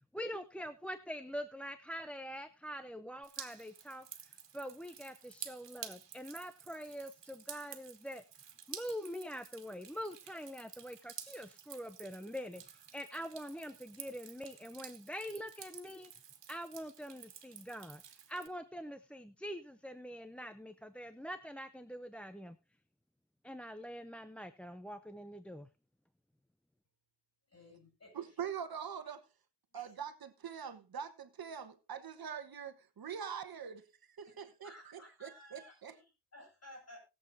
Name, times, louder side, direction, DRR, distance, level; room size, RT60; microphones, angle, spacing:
voice 1, 0.1-8.2 8.7-16.1 16.5-18.0 18.3-22.6 23.4-25.7, equal, 5° left, 0.6 m, -44 dB
Drip, 3.2-18.5, right 8 dB, 85° right, 1.7 m, -51 dB
voice 2, 27.5-28.3 29.7-29.9 34.6-36.0 36.3-37.0, left 1 dB, 35° left, 7.3 m, -55 dB
voice 3, 28.1-29.2 29.7-35.9, right 8 dB, 60° right, 1.3 m, -44 dB
20.5 x 7.9 x 2.7 m
wide cardioid pair, 130°, 41 cm